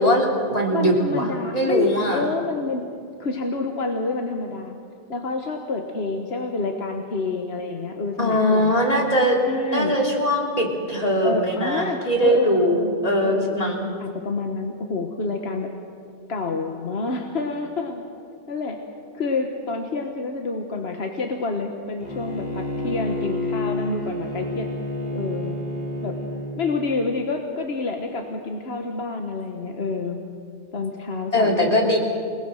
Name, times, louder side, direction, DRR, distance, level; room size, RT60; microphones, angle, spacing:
voice 1, 0.0-1.3 1.5-2.2 8.2-9.4 9.7-13.8 31.3-32.0, equal, 40° left, 0 dB, 3.2 m, -21 dB
voice 2, 0.7-2.8 3.2-4.8 5.1-8.7 9.4-10.0 11.2-12.9 13.2-13.7 14.0-15.7 16.3-18.0 18.5-18.8 19.1-24.7 25.1-25.6 26.0-26.2 26.6-30.2 30.7-31.7, left 3 dB, 85° left, 3 dB, 1.6 m, -28 dB
Bowed string instrument, 22.0-26.5, left 1 dB, 70° left, 5.5 m, -29 dB
29.0 x 18.5 x 6.4 m, 2.3 s
omnidirectional pair, 1.0 m